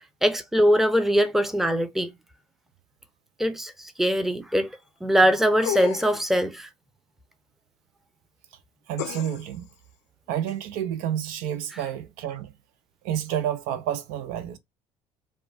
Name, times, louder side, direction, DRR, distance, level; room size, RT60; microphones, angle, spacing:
voice 1, 0.2-2.1 3.4-4.7 5.0-6.7, equal, ahead, 0.6 m, -22 dB
sound 1, 5.6-6.3 9.0-9.6 10.5-10.6, left 11 dB, 80° left, 0.6 m, -32 dB
voice 2, 8.9-9.7 10.3-12.5 13.0-14.6, right 10 dB, 70° right, 0.5 m, -29 dB
3.0 x 2.2 x 2.6 m
hypercardioid pair, 60°, 16 cm